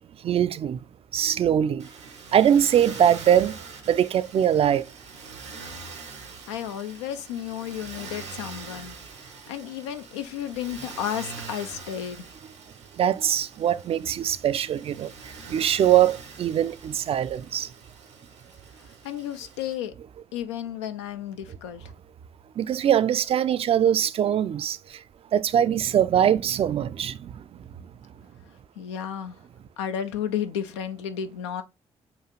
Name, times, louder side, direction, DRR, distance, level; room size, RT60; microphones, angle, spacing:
voice 1, 0.2-0.8 1.1-1.9 2.3-3.6 3.9-4.9 13.0-17.7 22.6-25.0 25.3-27.4, right 10 dB, 40° right, 0.4 m, -22 dB
Motor vehicle (road), 1.8-19.7, right 4 dB, 85° right, 0.8 m, -44 dB
voice 2, 6.5-9.0 9.5-12.2 19.0-19.9 20.3-21.9 28.8-29.4 29.8-31.6, left 9 dB, 75° left, 0.4 m, -32 dB
6.9 x 2.4 x 2.9 m
figure-of-eight pair, 40°, 15 cm